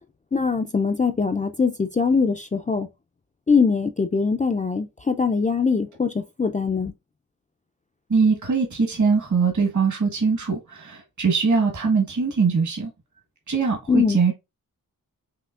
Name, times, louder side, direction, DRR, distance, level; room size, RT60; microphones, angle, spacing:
voice 1, 0.3-2.9 3.5-6.9 13.9-14.2, left 5 dB, 25° left, 0.3 m, -22 dB
voice 2, 8.1-12.9 13.5-14.3, right 5 dB, 55° right, 1.4 m, -22 dB
5.7 x 2.8 x 2.4 m
wide cardioid pair, 95°, 35 cm